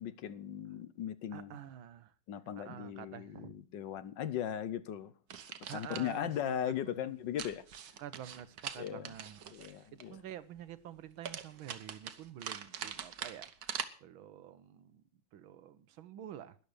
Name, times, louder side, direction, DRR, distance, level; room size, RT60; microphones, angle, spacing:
voice 1, 0.0-1.6 2.3-5.1 5.7-7.6 8.8-9.1 9.5-10.2, left 10 dB, 70° left, 1.4 m, -38 dB
voice 2, 1.3-2.1 2.6-3.5 5.7-7.5 8.0-13.5 14.0-15.0 15.3-16.6, right 10 dB, 80° right, 1.7 m, -48 dB
sound 1, 5.3-6.1 7.4-10.0 11.2-13.9, right 8 dB, 55° right, 1.4 m, -43 dB
12.5 x 11.0 x 6.7 m
omnidirectional pair, 2.2 m